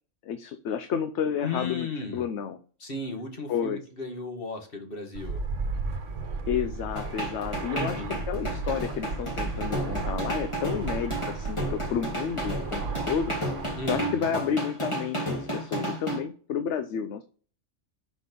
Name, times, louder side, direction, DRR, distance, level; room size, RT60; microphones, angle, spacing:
voice 1, 0.2-1.9 2.1-2.6 3.5-3.8 6.5-13.3 13.8-17.2, left 8 dB, 70° left, 9 dB, 0.9 m, -31 dB
voice 2, 1.4-2.3 2.8-5.4 7.7-8.2 13.8-14.4, left 3 dB, 45° left, 2 dB, 1.9 m, -35 dB
Fixed-wing aircraft airplane, 5.1-14.0, right 3 dB, 75° right, 1.3 m, -34 dB
sound 1, 7.0-16.2, right 1 dB, 25° left, 2.4 m, -32 dB
6.3 x 5.5 x 5.2 m, 0.42 s
omnidirectional pair, 1.3 m